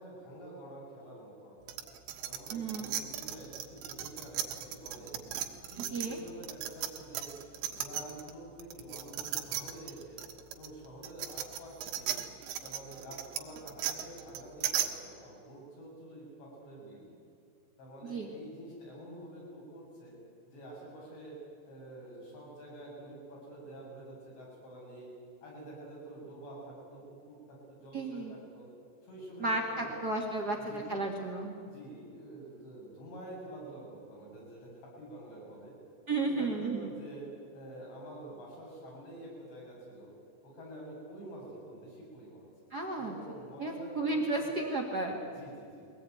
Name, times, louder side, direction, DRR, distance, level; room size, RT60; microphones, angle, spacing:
voice 1, 0.0-1.8 2.2-5.1 5.7-7.3 7.6-10.2 10.5-12.1 12.6-17.2 17.8-20.2 20.4-21.4 21.6-25.1 25.4-28.7 29.0-30.0 30.5-31.1 31.6-35.7 36.2-37.2 37.5-40.1 40.4-42.5 43.0-44.5 45.3-45.9, right 1 dB, 65° left, -3 dB, 9.6 m, -48 dB
sound 1, 1.7-8.3 8.6-14.9, right 11 dB, 90° right, 4.0 m, -36 dB
voice 2, 2.5-2.9 5.9-6.2 18.0-18.3 27.9-28.3 29.4-31.5 36.1-36.9 42.7-43.2 43.6-45.2, right 2 dB, 65° right, 2 dB, 0.9 m, -33 dB
22.5 x 18.5 x 9.5 m, 2.5 s
omnidirectional pair, 5.4 m